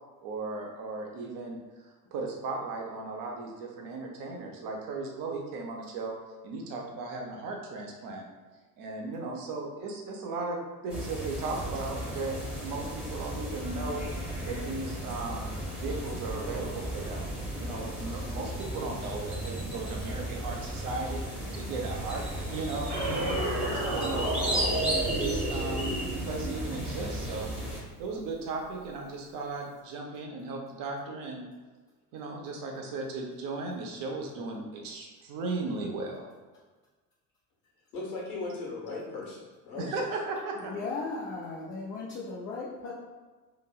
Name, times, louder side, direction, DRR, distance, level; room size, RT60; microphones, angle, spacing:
voice 1, 0.2-1.6 2.1-6.1 6.4-8.2 8.8-10.6 10.8-14.1 14.4-15.5 15.8-17.3 17.6-21.2 21.5-22.2 22.5-24.8 25.1-25.9 26.2-27.5 28.0-31.4 32.1-36.3 39.8-40.7, right 3 dB, 45° right, 0 dB, 0.7 m, -36 dB
sound 1, 10.9-27.8, equal, 5° right, 0.8 m, -35 dB
sound 2, 22.9-28.2, right 2 dB, 80° right, 0.8 m, -33 dB
voice 2, 37.9-40.1, left 3 dB, 60° left, -4 dB, 1.2 m, -37 dB
voice 3, 40.6-42.9, left 3 dB, 30° left, -5 dB, 0.3 m, -37 dB
2.9 x 2.6 x 2.3 m, 1.3 s
figure-of-eight pair, 65°, 48 cm